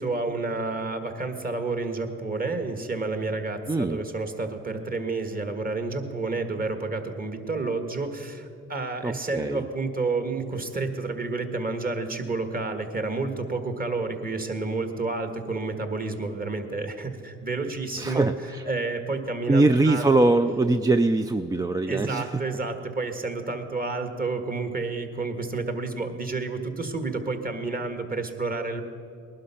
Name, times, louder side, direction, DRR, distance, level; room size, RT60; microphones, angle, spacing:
voice 1, 0.0-18.3 18.7-20.1 21.9-28.8, right 3 dB, 30° right, 7 dB, 1.6 m, -30 dB
voice 2, 3.7-4.0 9.0-9.6 18.0-18.6 19.5-22.4, right 2 dB, 10° right, 8 dB, 0.4 m, -22 dB
19.5 x 11.5 x 5.8 m, 2.4 s
cardioid pair, 90°, 30 cm